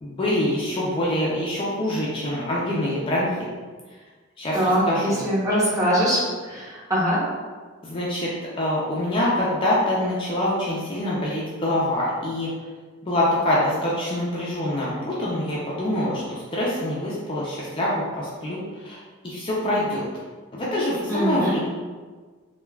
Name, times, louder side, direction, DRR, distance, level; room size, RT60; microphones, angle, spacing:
voice 1, 0.0-3.3 4.4-5.2 7.8-8.3 8.6-12.5 13.0-20.0 20.5-21.6, left 1 dB, 25° left, -6 dB, 0.4 m, -25 dB
voice 2, 4.5-7.2 21.1-21.6, equal, 15° right, -8 dB, 0.8 m, -22 dB
3.2 x 2.2 x 2.2 m, 1.4 s
head